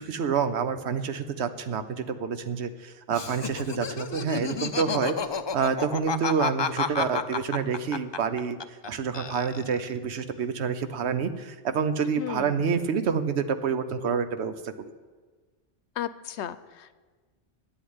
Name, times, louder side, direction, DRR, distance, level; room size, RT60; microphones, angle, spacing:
voice 1, 0.0-5.1 5.5-14.7, right 6 dB, 75° right, 10 dB, 1.1 m, -28 dB
Laughter, 3.1-8.9 9.1-9.9, left 6 dB, 45° left, 0.3 m, -31 dB
voice 2, 12.2-12.6 16.0-16.9, left 10 dB, 80° left, 14 dB, 0.9 m, -35 dB
12.0 x 8.0 x 9.5 m, 1.4 s
omnidirectional pair, 1.1 m